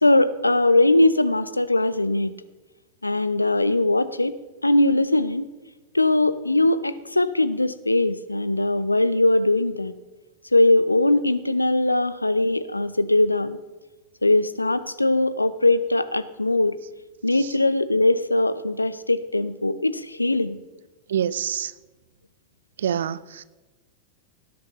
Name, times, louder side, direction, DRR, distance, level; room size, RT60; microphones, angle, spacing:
voice 1, 0.0-2.3 3.0-4.4 4.6-5.5 5.9-9.9 10.5-13.6 14.2-16.8 17.2-20.6, left 2 dB, 85° left, 0.5 m, -20 dB
voice 2, 21.1-21.8 22.8-23.4, right 9 dB, 65° right, 0.4 m, -27 dB
18.0 x 10.5 x 3.1 m
figure-of-eight pair, 90°, 0 cm